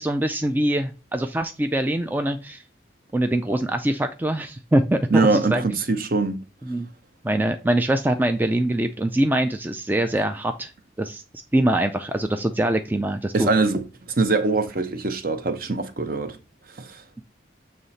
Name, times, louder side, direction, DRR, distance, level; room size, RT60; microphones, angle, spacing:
voice 1, 0.0-2.6 3.1-5.7 6.7-6.9 7.2-10.7 11.0-11.2 11.5-13.5, right 1 dB, 10° right, 0.3 m, -23 dB
voice 2, 5.1-6.4 13.3-13.8 14.1-16.4 16.8-17.0, right 3 dB, 50° right, 0.7 m, -22 dB
7.3 x 3.2 x 4.0 m
head